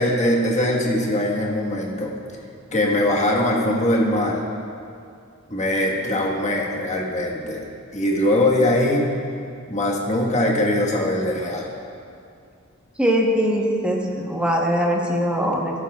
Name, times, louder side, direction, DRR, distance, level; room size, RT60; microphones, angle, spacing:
voice 1, 0.0-2.1 2.7-4.5 5.5-7.6 7.9-9.1 9.7-11.7, left 1 dB, 35° left, -2 dB, 1.4 m, -21 dB
voice 2, 13.0-15.8, equal, 5° right, -1 dB, 1.0 m, -21 dB
14.0 x 12.0 x 2.4 m, 2.4 s
head